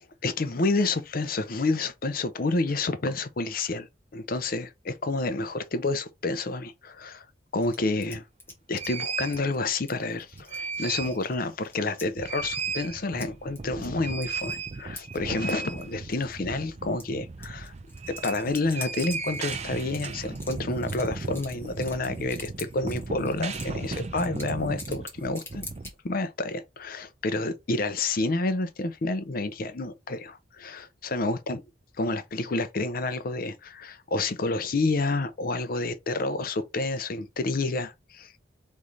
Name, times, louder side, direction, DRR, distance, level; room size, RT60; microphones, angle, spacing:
voice 1, 0.2-7.3 7.5-8.2 8.7-17.7 18.1-25.6 26.0-31.6 32.0-38.4, left 2 dB, 50° left, 0.6 m, -29 dB
sound 1, 7.6-8.9 9.3-9.6 9.9-12.1 12.3-12.4 13.2-13.3 13.6-13.9 14.2-14.6 15.0-15.8 16.1-16.4 17.0-17.1 17.4-25.9, left 2 dB, 15° left, 1.4 m, -45 dB
sound 2, 8.1-8.2 8.7-9.4 10.2-11.2 11.6-11.7 12.0-25.9, right 4 dB, 35° right, 0.5 m, -36 dB
3.6 x 3.2 x 3.9 m
head